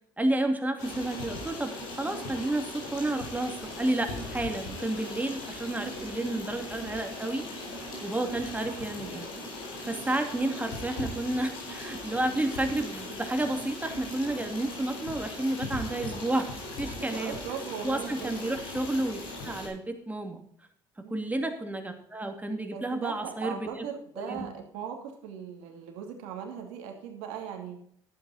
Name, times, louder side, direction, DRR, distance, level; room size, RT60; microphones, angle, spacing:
voice 1, 0.2-7.5 7.7-9.3 9.8-16.5 16.8-17.4 17.8-19.2 19.4-20.4 21.1-23.8 24.2-24.5, right 1 dB, 15° right, 5 dB, 2.6 m, -31 dB
Stream, 0.8-19.7, left 2 dB, 85° left, 4.2 m, -39 dB
voice 2, 17.0-18.3 21.0-21.3 22.7-27.8, right 8 dB, 80° right, 4 dB, 2.6 m, -39 dB
11.5 x 9.0 x 4.2 m, 0.66 s
hypercardioid pair, 60°, 11 cm